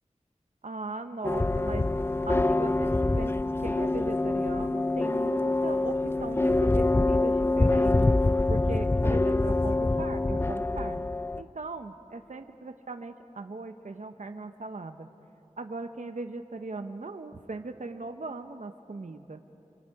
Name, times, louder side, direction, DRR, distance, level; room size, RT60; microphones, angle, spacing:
voice 1, 0.6-1.9 2.3-8.0 8.5-11.1 11.4-15.1 15.6-19.4, right 3 dB, 70° right, 7 dB, 0.8 m, -39 dB
sound 1, 1.2-11.4, left 2 dB, 20° left, 0.4 m, -25 dB
30.0 x 26.0 x 4.7 m, 2.9 s
wide cardioid pair, 45°, 13 cm